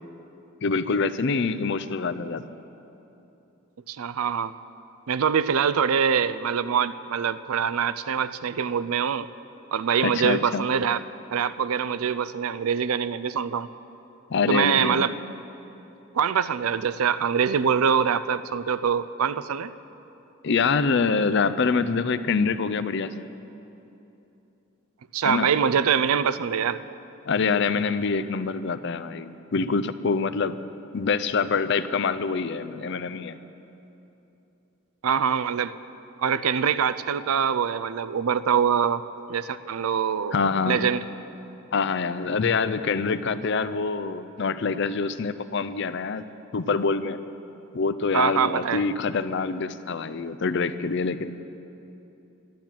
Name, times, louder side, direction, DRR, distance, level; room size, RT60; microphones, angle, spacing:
voice 1, 0.6-2.4 10.0-10.6 14.3-15.1 20.4-23.2 25.2-25.5 27.3-30.6 30.9-33.4 40.3-40.8 41.7-46.3 46.5-47.2 47.7-51.4, left 4 dB, 55° left, 13 dB, 0.5 m, -25 dB
voice 2, 3.9-4.5 5.1-9.3 9.7-11.0 11.3-13.7 14.5-15.2 16.1-19.7 25.1-26.8 35.0-35.7 36.2-39.0 39.3-40.4 40.6-41.0 48.1-48.8, right 7 dB, 85° right, 15 dB, 0.5 m, -24 dB
12.0 x 12.0 x 7.4 m, 3.0 s
head